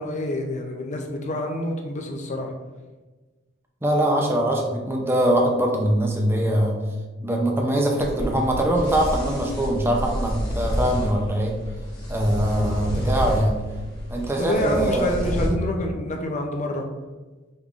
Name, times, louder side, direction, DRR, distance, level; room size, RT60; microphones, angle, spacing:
voice 1, 0.0-2.5 14.4-16.9, left 1 dB, 35° left, 2 dB, 0.6 m, -27 dB
voice 2, 3.8-6.8 7.2-11.5 12.1-13.6 14.1-15.2, right 1 dB, 10° right, 0 dB, 0.5 m, -22 dB
sound 1, 8.0-15.5, equal, 20° left, 1.1 m, -29 dB
5.4 x 3.5 x 2.4 m, 1.2 s
head